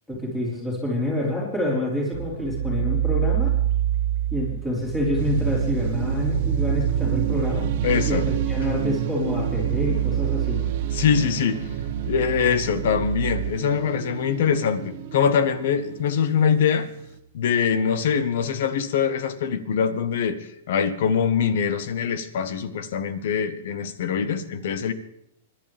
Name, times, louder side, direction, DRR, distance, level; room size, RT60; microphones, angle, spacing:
voice 1, 0.1-3.5 4.3-7.6 8.1-10.6, left 1 dB, 10° left, -5 dB, 4.3 m, -27 dB
sound 1, 2.1-13.5, right 11 dB, 85° right, 1.8 m, -27 dB
sound 2, 5.2-17.2, right 7 dB, 50° right, 1.2 m, -31 dB
voice 2, 7.8-8.2 10.9-11.6 12.1-16.9 17.3-24.9, left 7 dB, 65° left, 12 dB, 1.3 m, -23 dB
25.5 x 11.5 x 3.5 m, 0.76 s
hypercardioid pair, 150°, 0 cm